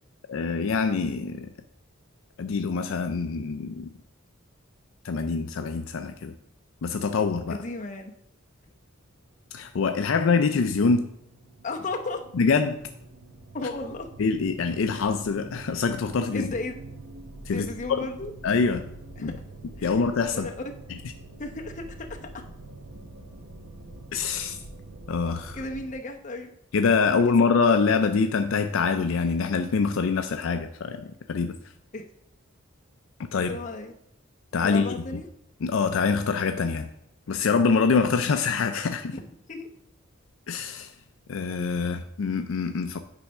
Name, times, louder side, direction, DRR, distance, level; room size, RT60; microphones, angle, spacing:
voice 1, 0.3-1.5 2.4-3.9 5.0-6.4 6.8-7.6 9.5-11.1 12.3-12.8 14.2-16.5 17.5-18.1 18.4-18.8 19.2-19.4 19.8-20.5 24.1-24.6 25.1-25.6 26.7-31.6 33.3-33.5 34.5-35.2 35.6-36.9 37.3-39.2 40.5-40.9 41.3-43.0, left 5 dB, 70° left, 7 dB, 0.4 m, -25 dB
voice 2, 7.5-8.1 11.6-12.3 13.5-14.1 16.3-16.7 17.5-18.3 19.2-19.3 19.8-19.9 20.3-20.7 21.4-22.4 25.5-26.5 27.1-27.2 31.9-32.1 33.3-33.9 34.6-35.3 39.1-39.2 39.5-39.7, left 2 dB, 35° left, 3 dB, 0.8 m, -34 dB
sound 1, 9.3-25.9, right 2 dB, 65° right, 0.9 m, -45 dB
8.9 x 3.5 x 5.4 m, 0.74 s
head